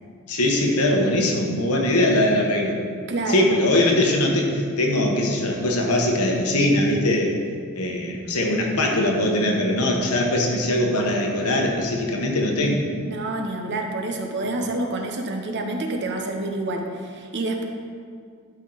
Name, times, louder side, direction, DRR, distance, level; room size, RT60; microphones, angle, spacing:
voice 1, 0.3-2.8 3.3-7.4 7.7-12.8 14.4-14.5, left 1 dB, 80° left, 0 dB, 1.2 m, -21 dB
voice 2, 3.1-3.5 13.0-17.7, right 2 dB, 50° right, 3 dB, 0.8 m, -28 dB
12.0 x 4.5 x 4.0 m, 2.1 s
head